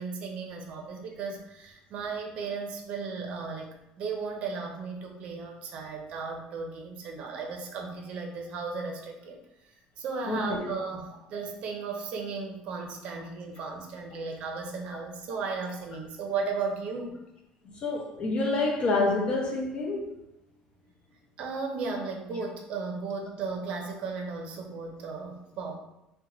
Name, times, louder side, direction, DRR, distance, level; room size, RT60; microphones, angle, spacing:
voice 1, 0.0-3.7 4.0-9.4 10.0-17.2 21.4-25.8, right 4 dB, 55° right, 0.6 m, -35 dB
voice 2, 10.3-10.7 17.8-20.1, left 3 dB, 40° left, 0.6 m, -28 dB
2.9 x 2.1 x 3.7 m
cardioid pair, 140°, 3 cm